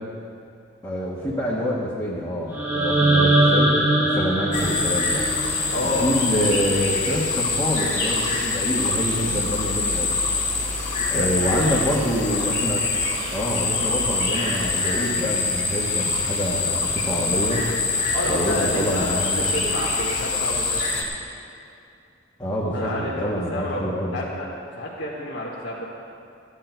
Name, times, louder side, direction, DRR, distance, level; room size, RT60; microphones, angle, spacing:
voice 1, 0.8-5.3 5.8-10.1 11.1-12.8 13.3-17.7 18.2-19.7 22.4-24.2, equal, 15° left, -8 dB, 1.5 m, -26 dB
sound 1, 2.5-6.6, right 1 dB, 10° right, 1.8 m, -22 dB
sound 2, 4.5-21.0, left 3 dB, 40° left, 2.0 m, -25 dB
voice 2, 5.7-6.1 11.0-11.3 11.6-11.7 18.1-20.8 22.7-24.5 24.8-25.8, left 1 dB, 60° left, -8 dB, 1.7 m, -29 dB
15.0 x 10.5 x 4.6 m, 2.6 s
head